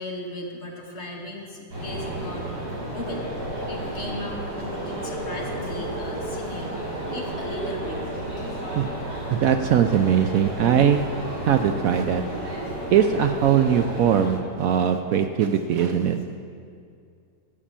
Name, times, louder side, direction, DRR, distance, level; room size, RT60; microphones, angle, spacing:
voice 1, 0.0-2.6 2.9-8.1 8.4-8.5 8.8-9.0 15.6-15.7, left 1 dB, 45° left, 0 dB, 1.6 m, -37 dB
sound 1, 1.7-14.3, right 1 dB, 40° right, 3.6 m, -32 dB
voice 2, 9.3-11.0 11.5-12.2 12.9-16.2, right 8 dB, 70° right, 7 dB, 0.9 m, -20 dB
12.0 x 6.8 x 7.4 m, 2.3 s
omnidirectional pair, 1.7 m